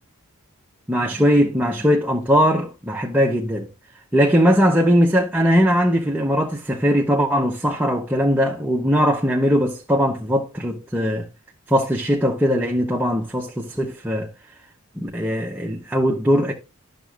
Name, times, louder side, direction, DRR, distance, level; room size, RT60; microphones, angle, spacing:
voice 1, 0.9-3.7 4.1-11.3 11.7-14.3 15.0-16.5, equal, 10° right, 0.7 m, -20 dB
11.0 x 6.3 x 2.3 m
head